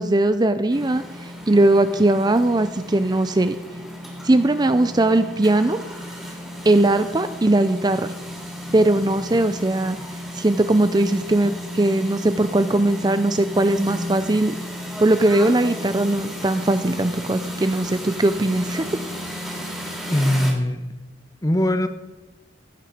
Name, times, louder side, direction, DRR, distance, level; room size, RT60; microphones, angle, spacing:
voice 1, 0.0-3.6 4.2-5.8 6.6-8.1 8.7-10.0 10.3-14.6 15.0-18.9, right 2 dB, 20° right, 11 dB, 0.5 m, -19 dB
sound 1, 0.7-20.5, equal, ahead, 2.9 m, -34 dB
voice 2, 20.1-20.8 21.4-21.9, left 1 dB, 20° left, 10 dB, 0.9 m, -20 dB
16.0 x 9.7 x 5.1 m, 1.1 s
head